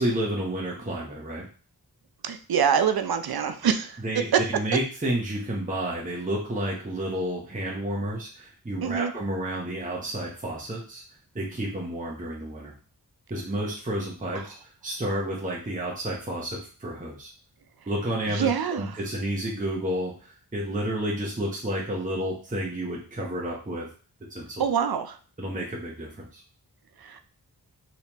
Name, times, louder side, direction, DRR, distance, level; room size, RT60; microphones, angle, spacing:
voice 1, 0.0-1.5 4.0-11.0 11.3-12.7 13.3-17.3 17.9-23.9 24.3-24.7 25.4-26.4, right 1 dB, 20° right, -3 dB, 0.9 m, -30 dB
voice 2, 2.2-4.0 4.3-4.4 8.8-9.1 18.3-18.9 24.6-25.2 27.0-27.2, right 7 dB, 65° right, 8 dB, 0.5 m, -25 dB
3.2 x 3.0 x 2.9 m, 0.39 s
cardioid pair, 45°, 39 cm